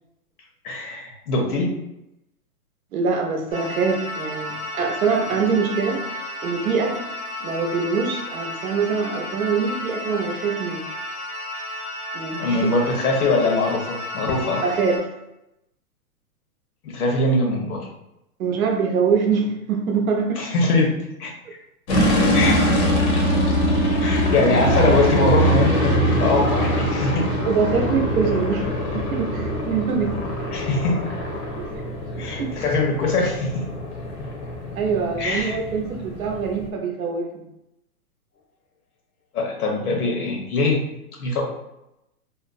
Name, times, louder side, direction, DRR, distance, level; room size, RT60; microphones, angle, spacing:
voice 1, 0.6-1.7 12.4-14.6 16.8-17.9 20.4-20.9 21.2-21.3 22.3-22.5 24.0-27.3 30.5-31.0 32.2-33.7 35.2-35.6 39.3-40.8 41.2-41.4, left 3 dB, 75° left, 0 dB, 1.0 m, -22 dB
voice 2, 2.9-6.0 6.4-7.1 7.4-10.9 12.1-12.7 14.6-15.1 18.4-20.5 22.4-22.5 27.5-30.2 32.4-32.5 34.8-37.4, right 5 dB, 65° right, 2 dB, 0.7 m, -24 dB
sound 1, 3.5-15.0, left 1 dB, 5° left, 0.5 m, -33 dB
sound 2, 21.9-36.7, equal, 50° left, 0.7 m, -23 dB
2.8 x 2.0 x 2.5 m, 0.88 s
hypercardioid pair, 160°, 45 cm